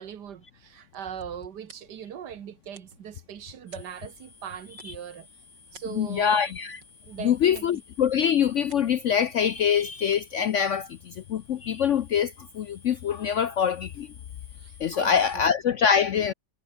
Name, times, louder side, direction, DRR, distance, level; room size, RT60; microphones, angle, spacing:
voice 1, 0.0-5.3 5.7-6.5 7.0-7.8 14.6-15.5, right 9 dB, 70° right, 1.8 m, -40 dB
sound 1, 0.6-11.8, right 3 dB, 90° right, 5.4 m, -59 dB
sound 2, 3.7-15.4, left 4 dB, 90° left, 4.5 m, -55 dB
voice 2, 5.9-6.8 7.2-14.1 14.8-16.3, left 8 dB, 65° left, 0.7 m, -24 dB
omnidirectional pair, 1.9 m